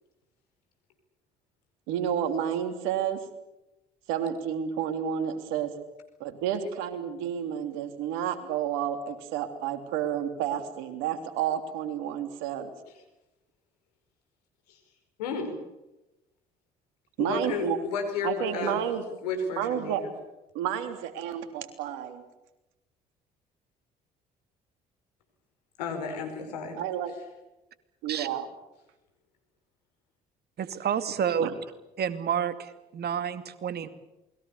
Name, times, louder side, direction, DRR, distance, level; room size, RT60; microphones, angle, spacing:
voice 1, 1.9-3.2 4.1-5.7 6.2-12.7 17.2-17.8 18.2-19.0 19.6-20.0 20.5-22.2 26.8-27.1 28.0-28.5 31.4-31.5, right 9 dB, 75° right, 8 dB, 3.3 m, -30 dB
voice 2, 15.2-15.7 17.2-18.9 19.2-20.1 25.8-26.8, left 4 dB, 85° left, 6 dB, 5.1 m, -32 dB
voice 3, 30.6-31.5 32.0-33.9, right 8 dB, 55° right, 11 dB, 2.5 m, -29 dB
28.0 x 21.5 x 7.1 m, 0.97 s
hypercardioid pair, 55°, 20 cm